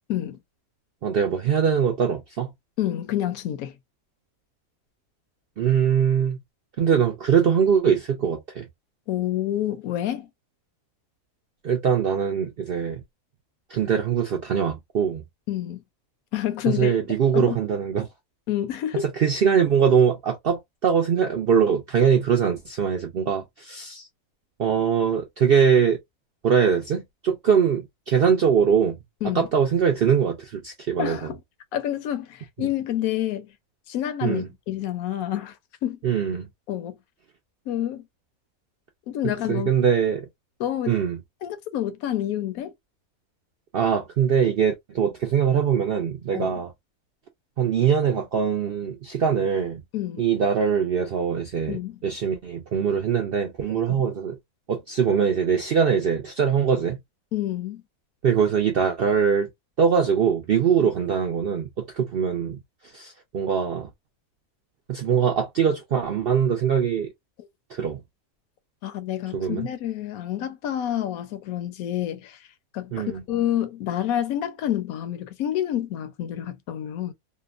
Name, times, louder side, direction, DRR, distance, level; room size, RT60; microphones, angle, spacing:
voice 1, 1.0-2.5 5.6-6.4 6.8-8.7 11.6-13.0 13.7-15.2 16.7-18.1 19.0-24.1 24.6-26.0 26.4-29.0 29.3-31.3 32.6-32.7 34.2-34.5 36.0-36.5 39.5-40.3 40.9-41.2 43.7-46.7 47.6-49.8 50.2-54.4 54.7-57.0 58.2-59.5 59.8-62.6 62.8-63.9 64.9-67.1 67.7-68.0 69.3-69.7 72.9-73.2, right 7 dB, 65° right, 0.5 m, -22 dB
voice 2, 2.8-3.7 9.1-10.3 15.5-15.8 16.3-17.0 17.3-17.6 18.5-19.0 29.2-29.5 31.0-31.4 31.7-33.5 33.9-35.5 35.8-36.0 36.7-37.0 37.7-38.1 39.1-39.7 40.6-41.0 41.4-42.7 46.3-46.5 49.9-50.3 51.7-52.0 53.9-54.0 57.3-57.8 60.8-60.9 68.8-72.4 72.7-77.1, left 12 dB, 75° left, 1.0 m, -28 dB
2.8 x 2.1 x 2.3 m
omnidirectional pair, 1.6 m